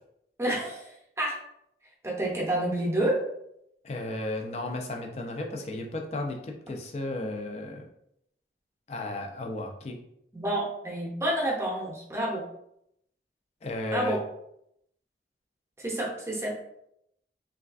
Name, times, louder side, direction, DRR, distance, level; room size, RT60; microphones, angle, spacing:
voice 1, 0.4-1.4 2.0-3.2 10.3-12.4 13.9-14.2 15.8-16.6, right 1 dB, 15° right, -3 dB, 0.6 m, -29 dB
voice 2, 3.8-7.9 8.9-10.0 13.6-14.2, left 1 dB, 35° left, 2 dB, 0.4 m, -34 dB
3.2 x 2.3 x 2.4 m, 0.76 s
head